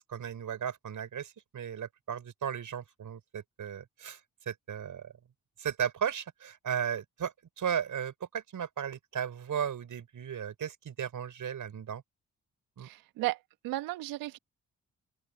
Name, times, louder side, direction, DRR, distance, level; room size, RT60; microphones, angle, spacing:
voice 1, 0.0-4.2 4.5-5.1 5.6-12.0 12.8-12.9, right 8 dB, 65° right, 6.0 m, -35 dB
voice 2, 12.8-13.4 13.6-14.4, right 18 dB, 85° right, 1.7 m, -34 dB
open air
hypercardioid pair, 40°, 34 cm